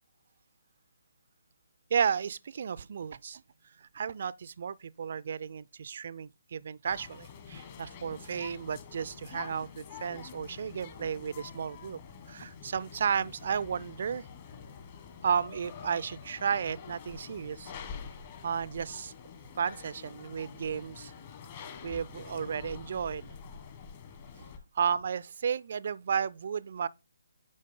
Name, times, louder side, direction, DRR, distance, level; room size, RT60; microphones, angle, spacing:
voice 1, 1.9-3.4 3.8-12.0 12.3-14.2 15.2-17.7 18.4-19.1 19.6-21.1 21.8-23.3 24.7-26.9, right 7 dB, 50° right, 0.4 m, -33 dB
sound 1, 6.9-24.6, left 6 dB, 35° left, 1.7 m, -47 dB
9.4 x 5.0 x 3.7 m
figure-of-eight pair, 140°, 0 cm